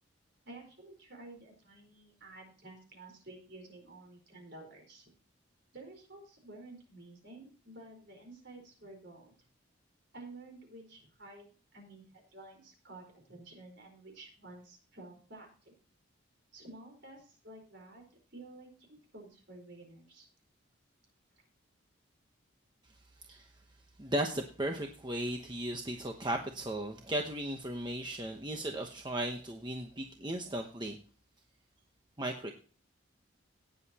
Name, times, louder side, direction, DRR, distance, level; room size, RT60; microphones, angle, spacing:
voice 1, 0.4-5.1 5.7-9.3 10.1-15.7 16.5-18.0 18.3-20.3 21.4-21.5 30.0-30.1, right 2 dB, 55° right, 2 dB, 4.6 m, -52 dB
voice 2, 23.2-23.5 24.0-31.0 32.2-32.5, right 1 dB, 20° right, 3 dB, 1.0 m, -36 dB
18.0 x 7.4 x 2.9 m, 0.39 s
head